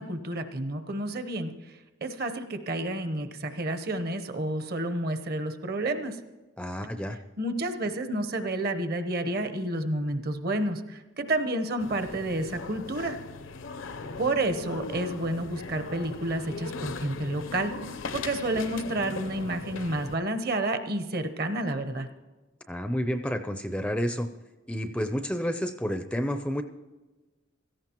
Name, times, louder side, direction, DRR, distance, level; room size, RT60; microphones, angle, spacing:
voice 1, 0.0-1.5 2.0-6.2 7.4-13.2 14.2-17.8 18.1-22.1, right 1 dB, 50° right, 9 dB, 0.9 m, -30 dB
voice 2, 6.6-7.2 22.7-24.3 24.7-26.6, equal, 5° left, 8 dB, 0.5 m, -30 dB
sound 1, 11.8-20.2, left 4 dB, 75° left, 0.7 m, -39 dB
16.5 x 14.0 x 3.0 m, 1.2 s
head